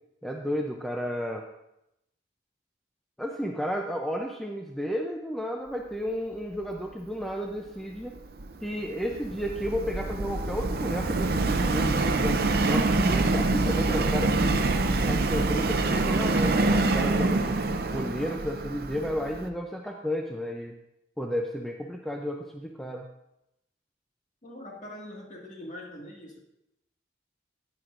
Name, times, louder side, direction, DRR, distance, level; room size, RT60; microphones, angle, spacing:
voice 1, 0.2-1.5 3.2-8.2 8.6-14.6 15.0-20.8 21.2-23.0, equal, ahead, 1 dB, 0.5 m, -32 dB
Subway metro underground, 8.2-19.5, right 2 dB, 55° right, 0.6 m, -26 dB
voice 2, 24.4-26.4, left 1 dB, 40° left, -2 dB, 2.0 m, -42 dB
10.5 x 9.8 x 2.5 m, 0.84 s
head